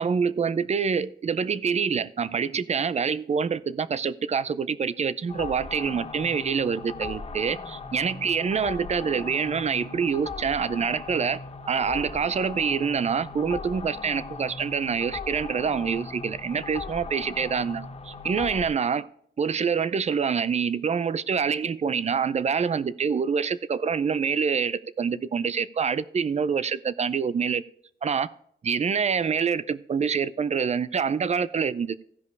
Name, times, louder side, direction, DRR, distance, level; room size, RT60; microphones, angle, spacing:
voice 1, 0.0-11.4 11.7-19.1 19.4-27.6 28.0-28.3 28.6-32.0, right 6 dB, 35° right, 0.5 m, -26 dB
sound 1, 5.3-18.7, left 4 dB, 30° left, 0.9 m, -38 dB
15.0 x 5.3 x 4.7 m
cardioid pair, 115°, 20 cm